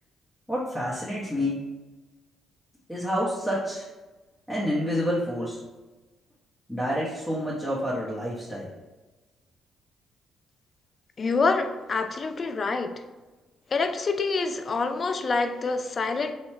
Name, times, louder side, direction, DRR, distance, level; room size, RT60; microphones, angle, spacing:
voice 1, 0.5-1.6 2.9-3.9 4.5-5.6 6.7-8.7, equal, 5° left, -6 dB, 0.9 m, -28 dB
voice 2, 11.2-13.0 13.7-16.3, left 4 dB, 40° left, 8 dB, 0.4 m, -26 dB
4.6 x 2.3 x 4.3 m, 1.2 s
cardioid pair, 90°, 0 cm